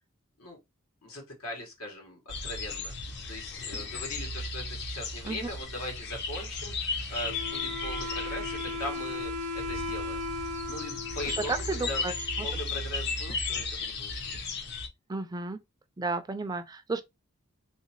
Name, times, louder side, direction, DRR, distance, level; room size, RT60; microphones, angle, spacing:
voice 1, 1.0-2.9 3.3-10.3 10.6-11.5 11.9-12.0 12.4-14.6, left 1 dB, 85° left, 1.4 m, -40 dB
sound 1, 2.3-14.9, left 3 dB, 55° left, 0.7 m, -35 dB
Wind instrument woodwind instrument, 7.2-12.7, left 2 dB, 85° right, 0.6 m, -37 dB
voice 2, 11.3-12.5 15.1-15.6 16.0-17.0, right 3 dB, 20° right, 0.3 m, -33 dB
3.3 x 2.7 x 2.8 m
head